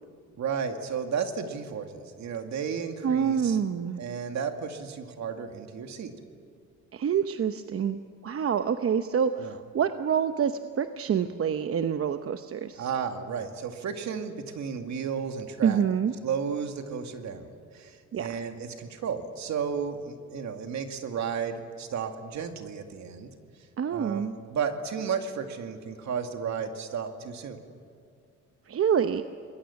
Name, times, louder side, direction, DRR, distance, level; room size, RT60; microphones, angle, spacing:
voice 1, 0.4-3.6 4.0-6.1 9.4-9.5 12.8-15.8 16.2-23.3 23.9-27.6, right 6 dB, 65° right, 5 dB, 2.3 m, -33 dB
voice 2, 3.0-4.0 6.9-8.0 8.2-12.9 15.6-16.1 18.1-18.3 23.8-24.3 28.7-29.2, right 7 dB, 50° right, 9 dB, 0.9 m, -27 dB
26.5 x 21.0 x 7.2 m, 2.4 s
cardioid pair, 90°, 30 cm